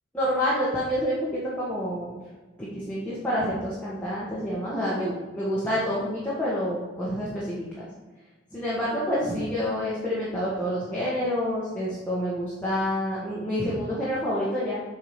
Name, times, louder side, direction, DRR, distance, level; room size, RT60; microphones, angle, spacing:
voice 1, 0.1-2.1 2.6-7.9 8.5-14.8, equal, 5° left, -9 dB, 1.5 m, -28 dB
7.6 x 4.8 x 5.0 m, 1.2 s
head